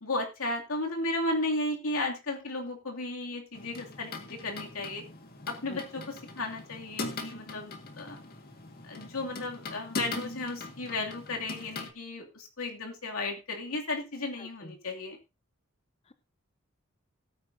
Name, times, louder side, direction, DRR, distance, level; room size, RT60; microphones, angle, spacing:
voice 1, 0.0-5.0 5.5-8.2 8.8-15.2, left 2 dB, 90° left, 1 dB, 2.7 m, -34 dB
sound 1, 3.5-11.9, left 3 dB, 45° left, 1.8 m, -41 dB
voice 2, 14.4-14.8 16.1-16.2, left 1 dB, 30° left, 9 dB, 0.7 m, -46 dB
17.0 x 9.3 x 2.7 m, 0.26 s
head